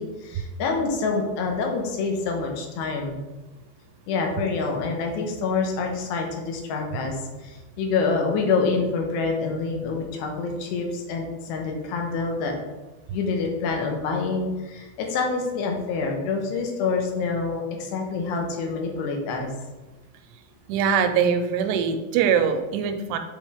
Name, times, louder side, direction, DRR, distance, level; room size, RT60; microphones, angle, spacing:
voice 1, 0.0-3.2 4.1-7.2 7.4-12.5 13.1-19.5, left 4 dB, 85° left, 2 dB, 3.2 m, -26 dB
voice 2, 20.7-23.2, right 7 dB, 90° right, 7 dB, 2.7 m, -22 dB
7.8 x 4.5 x 3.5 m, 1.1 s
omnidirectional pair, 4.8 m